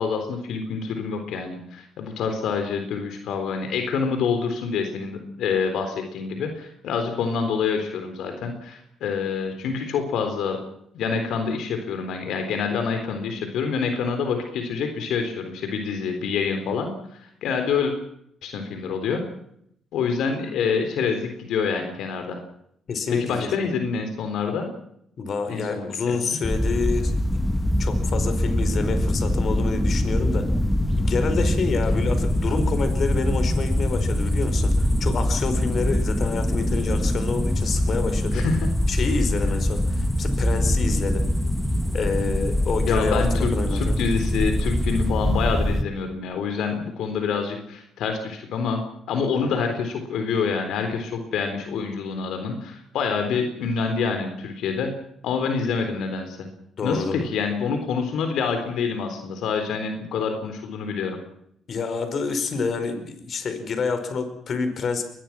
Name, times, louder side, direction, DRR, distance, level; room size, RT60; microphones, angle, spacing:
voice 1, 0.0-10.6 10.9-17.9 18.4-19.2 19.9-22.4 23.1-24.7 25.5-26.4 38.3-38.6 42.9-48.8 49.1-54.9 55.2-56.5 56.8-61.2, left 5 dB, 80° left, 6 dB, 3.8 m, -27 dB
voice 2, 22.9-23.5 25.2-30.5 31.0-38.4 38.9-41.3 41.9-44.0 49.3-49.5 56.8-57.2 61.7-65.0, left 4 dB, 55° left, 9 dB, 4.9 m, -28 dB
sound 1, 26.4-45.8, left 1 dB, 10° left, 2.2 m, -23 dB
23.5 x 21.0 x 6.1 m, 0.72 s
cardioid pair, 90°, 0 cm